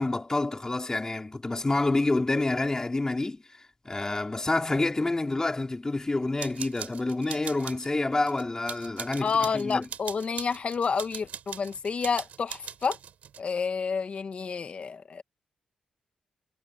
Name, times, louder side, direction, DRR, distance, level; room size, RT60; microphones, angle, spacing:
voice 1, 0.0-3.4 3.8-9.9, left 2 dB, 25° left, 4.1 m, -28 dB
sound 1, 6.4-7.9 8.3-13.4, right 9 dB, 75° right, 4.6 m, -41 dB
voice 2, 9.2-13.0 13.4-15.2, left 5 dB, 55° left, 2.1 m, -29 dB
cardioid pair, 60°, 3 cm